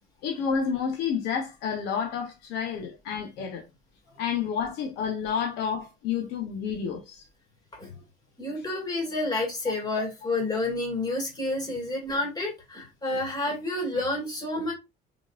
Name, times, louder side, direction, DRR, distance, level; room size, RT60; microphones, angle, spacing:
voice 1, 0.2-3.6 4.2-7.2, left 7 dB, 85° left, 0.9 m, -30 dB
voice 2, 8.4-14.7, left 2 dB, 25° left, 2.2 m, -29 dB
3.9 x 3.6 x 2.5 m
cardioid pair, 110°, 17 cm